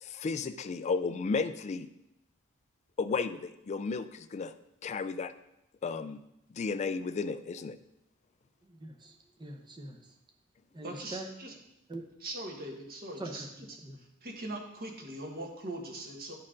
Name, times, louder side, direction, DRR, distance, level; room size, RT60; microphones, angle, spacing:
voice 1, 0.0-1.9 3.0-4.5 4.8-5.3 5.8-6.2 6.5-7.8, left 4 dB, 30° left, 11 dB, 0.3 m, -33 dB
voice 2, 8.7-9.1 9.4-10.0 10.7-11.3 11.9-12.0 13.2-13.5 13.8-14.0, right 1 dB, 20° right, 2 dB, 0.8 m, -42 dB
voice 3, 10.8-11.5 12.2-13.7 14.2-16.3, right 1 dB, 45° right, 1 dB, 1.4 m, -41 dB
11.0 x 4.4 x 3.7 m, 0.86 s
head